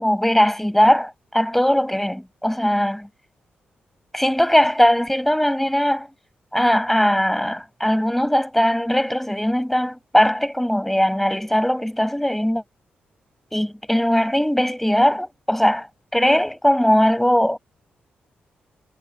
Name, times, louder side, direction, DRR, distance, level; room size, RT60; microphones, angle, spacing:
voice 1, 0.0-3.1 4.1-6.1 6.5-12.6 13.5-15.9 16.1-17.6, equal, 5° left, 5.9 m, -19 dB
supercardioid pair, 45°, 4 cm